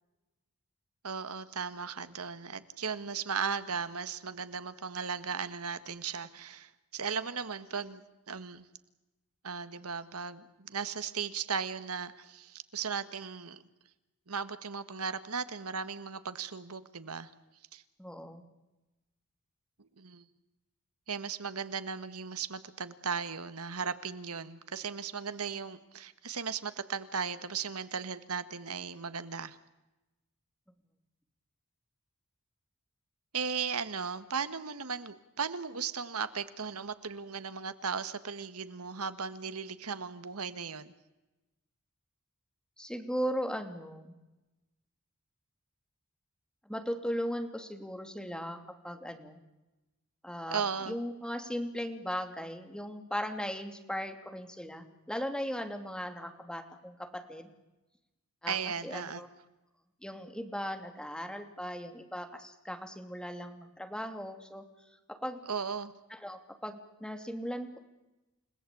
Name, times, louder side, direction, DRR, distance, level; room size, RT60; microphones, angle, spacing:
voice 1, 1.0-8.7 9.4-13.6 14.3-17.3 17.7-17.8 19.8-20.2 21.1-29.6 33.3-40.9 50.5-51.0 58.5-59.2 65.5-65.9, right 6 dB, 80° right, 12 dB, 1.6 m, -36 dB
voice 2, 18.0-18.4 42.8-44.1 46.6-49.4 50.2-57.5 58.4-58.6 58.8-59.3 60.0-64.6 65.1-65.4 66.1-67.8, equal, 5° left, 6 dB, 2.8 m, -38 dB
29.5 x 18.0 x 8.6 m, 1.0 s
head